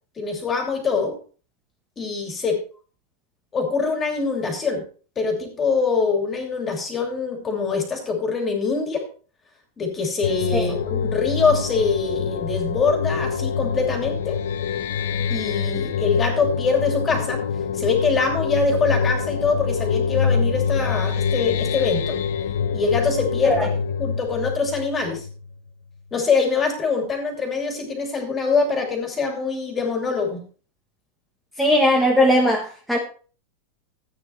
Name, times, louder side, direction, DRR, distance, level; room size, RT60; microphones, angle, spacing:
voice 1, 0.2-1.2 2.0-2.6 3.5-4.8 5.2-9.0 9.8-14.4 15.3-17.4 17.7-22.2 22.7-23.7 24.0-25.2 26.1-30.4, left 4 dB, 15° left, 3 dB, 2.8 m, -24 dB
sound 1, 10.2-25.7, left 6 dB, 75° left, 0.9 m, -25 dB
voice 2, 31.6-33.0, left 1 dB, ahead, -1 dB, 1.1 m, -18 dB
13.5 x 9.0 x 3.2 m, 0.39 s
supercardioid pair, 170°, 0 cm